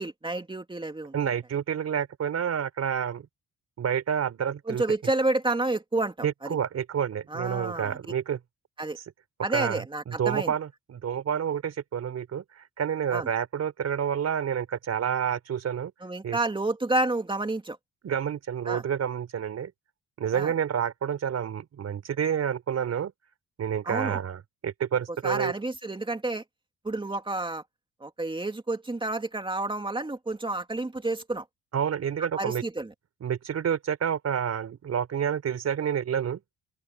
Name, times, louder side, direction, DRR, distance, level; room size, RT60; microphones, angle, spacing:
voice 1, 0.0-1.3 4.7-6.6 7.3-8.0 8.8-9.0 9.4-10.5 13.1-13.3 16.0-17.8 18.7-18.8 20.3-20.5 23.8-24.2 25.2-26.4 26.8-27.6 28.0-31.4 32.4-32.9, right 2 dB, 15° right, 2.8 m, -30 dB
voice 2, 1.1-3.3 3.8-4.8 6.2-8.4 9.5-15.9 16.2-16.4 18.0-19.7 20.2-23.1 23.6-25.5 31.7-32.6 33.2-36.4, right 8 dB, 60° right, 4.2 m, -29 dB
open air
cardioid pair, 90°, 30 cm